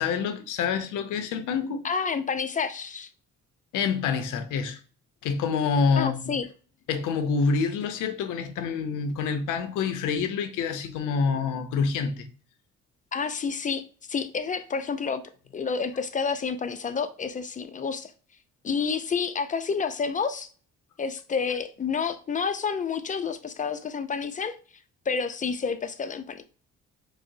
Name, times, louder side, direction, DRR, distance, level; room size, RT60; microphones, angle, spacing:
voice 1, 0.0-1.8 3.7-4.8 5.2-6.4 6.9-12.3, left 5 dB, 90° left, 0.6 m, -27 dB
voice 2, 1.8-3.1 6.0-6.5 13.1-13.8 14.1-15.2 15.5-18.1 18.6-20.5 21.0-24.6 25.1-26.4, left 5 dB, 25° left, 0.4 m, -29 dB
4.8 x 2.0 x 2.6 m
cardioid pair, 90°, 30 cm